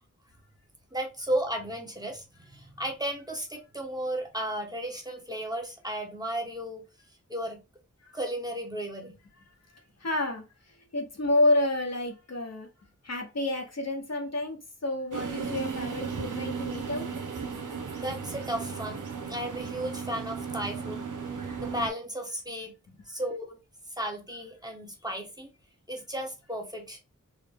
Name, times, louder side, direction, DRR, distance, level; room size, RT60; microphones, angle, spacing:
voice 1, 0.9-6.8 7.3-7.6 8.1-9.1 18.0-19.0 19.3-21.1 21.6-22.7 23.1-23.6 24.0-25.5 25.9-27.0, right 1 dB, 10° right, 1.0 m, -34 dB
voice 2, 10.0-12.7 13.0-17.1, left 2 dB, 55° left, 0.9 m, -29 dB
sound 1, 15.1-21.9, right 5 dB, 85° right, 0.7 m, -35 dB
3.9 x 2.1 x 3.4 m
wide cardioid pair, 60°, 31 cm